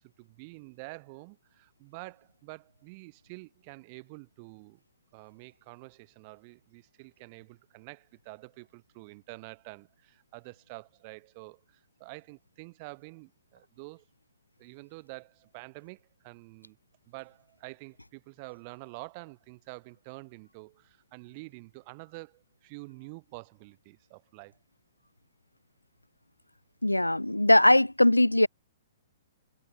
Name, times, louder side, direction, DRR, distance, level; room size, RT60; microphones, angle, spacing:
voice 1, 0.0-4.8 5.1-14.0 14.6-16.8 17.1-24.6, right 28 dB, 35° right, 3.0 m, -47 dB
voice 2, 26.8-28.5, left 1 dB, 85° left, 0.4 m, -20 dB
figure-of-eight pair, 115°, 0 cm